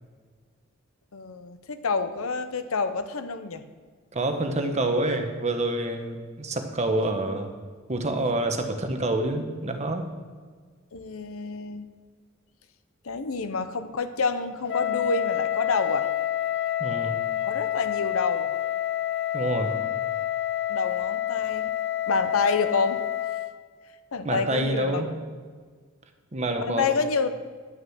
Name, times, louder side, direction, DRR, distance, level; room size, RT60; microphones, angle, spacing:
voice 1, 1.1-3.6 10.9-11.9 13.0-16.1 17.4-18.5 20.7-21.7 22.1-23.0 24.1-25.2 26.6-27.3, left 4 dB, 85° left, 10 dB, 0.8 m, -28 dB
voice 2, 4.1-7.5 7.9-10.1 16.8-17.2 19.3-19.8 24.2-25.1 26.3-26.9, right 2 dB, 30° right, 6 dB, 1.1 m, -27 dB
Wind instrument woodwind instrument, 14.7-23.6, left 12 dB, 55° left, 0.6 m, -28 dB
11.0 x 6.2 x 7.9 m, 1.6 s
head